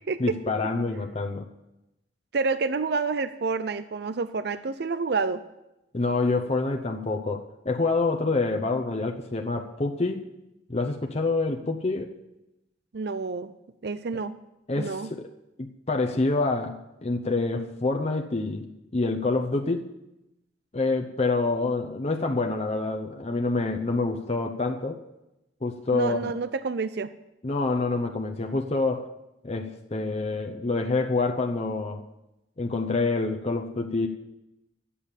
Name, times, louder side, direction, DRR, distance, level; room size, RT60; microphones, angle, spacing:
voice 1, 0.2-1.5 5.9-10.3 10.7-12.1 14.7-15.3 15.6-19.9 20.7-25.0 25.6-26.3 27.4-29.1 29.4-32.0 32.6-34.1, left 3 dB, 35° left, 3 dB, 0.8 m, -27 dB
voice 2, 2.3-5.4 12.9-13.5 13.8-14.3 14.8-15.1 25.9-27.1, right 4 dB, 65° right, 12 dB, 0.5 m, -28 dB
12.0 x 8.5 x 7.3 m, 0.92 s
head